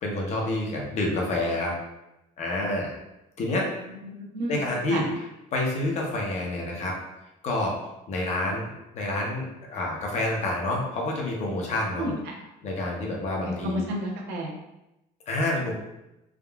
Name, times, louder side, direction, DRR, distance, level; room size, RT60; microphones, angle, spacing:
voice 1, 0.0-1.8 2.4-2.9 3.4-3.7 4.5-5.1 5.5-7.0 7.4-7.8 8.1-12.1 12.6-13.8 15.3-15.7, left 1 dB, 40° left, -1 dB, 0.7 m, -28 dB
voice 2, 4.0-4.6 4.9-5.0 12.0-12.4 13.4-14.6, equal, 80° right, -1 dB, 0.7 m, -31 dB
3.5 x 2.3 x 2.2 m, 0.91 s
cardioid pair, 155°, 17 cm